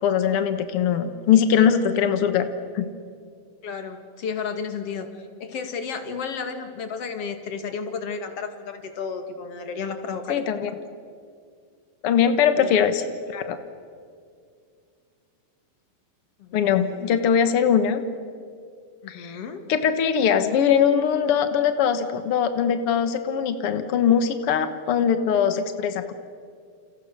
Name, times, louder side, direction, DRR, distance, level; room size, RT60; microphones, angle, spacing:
voice 1, 0.0-2.4 2.7-2.9 10.3-10.7 12.0-13.6 16.5-18.0 19.1-19.4 19.7-26.1, left 8 dB, 80° left, 9 dB, 1.2 m, -21 dB
voice 2, 3.6-5.1 5.4-10.4 12.6-12.8 16.4-17.1 19.0-19.7, left 5 dB, 45° left, 7 dB, 2.5 m, -33 dB
29.5 x 29.0 x 6.7 m, 2.3 s
omnidirectional pair, 4.5 m